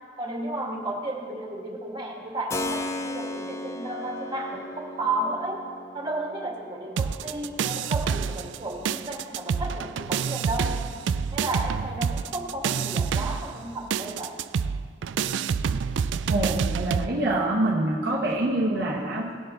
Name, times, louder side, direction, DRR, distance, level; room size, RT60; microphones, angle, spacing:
voice 1, 0.2-5.6 5.9-10.8 11.3-14.4, right 1 dB, 25° right, -1 dB, 2.1 m, -33 dB
Keyboard (musical), 2.5-11.1, left 2 dB, 15° left, 0.5 m, -38 dB
sound 1, 7.0-8.6 8.8-17.1, right 6 dB, 75° right, 0.3 m, -27 dB
voice 2, 16.3-19.3, right 1 dB, 60° right, -4 dB, 1.1 m, -25 dB
18.0 x 7.0 x 3.9 m, 2.1 s
head